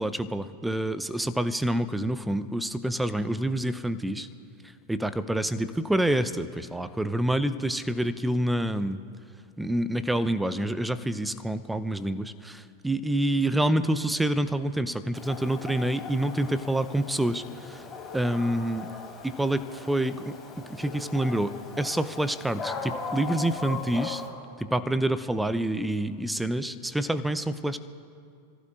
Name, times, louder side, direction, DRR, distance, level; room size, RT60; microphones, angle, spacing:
voice 1, 0.0-4.3 4.9-9.0 9.6-17.8 18.1-18.9 19.2-20.3 20.7-21.5 21.8-24.2 24.6-27.8, right 1 dB, 5° right, 13 dB, 0.7 m, -27 dB
Dog, 15.1-24.3, left 4 dB, 20° left, 4.1 m, -39 dB
29.5 x 15.5 x 2.5 m, 2.3 s
figure-of-eight pair, 90°, 0 cm